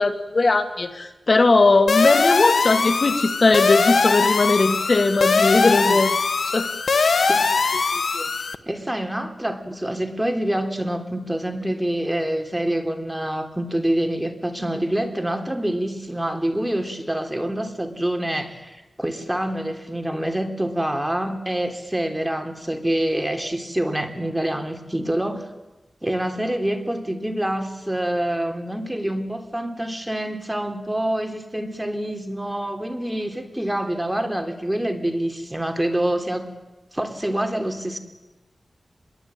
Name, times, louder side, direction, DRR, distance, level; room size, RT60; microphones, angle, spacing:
voice 1, 0.0-6.1 6.5-6.7, left 3 dB, 55° left, 8 dB, 2.0 m, -19 dB
sound 1, 1.9-8.5, left 4 dB, 80° left, 1.1 m, -21 dB
voice 2, 5.7-6.1 7.3-8.3 8.6-25.5 26.0-36.5 36.9-38.0, right 1 dB, 10° right, 5 dB, 3.4 m, -26 dB
27.0 x 22.0 x 9.0 m, 1.1 s
wide cardioid pair, 70°, 0 cm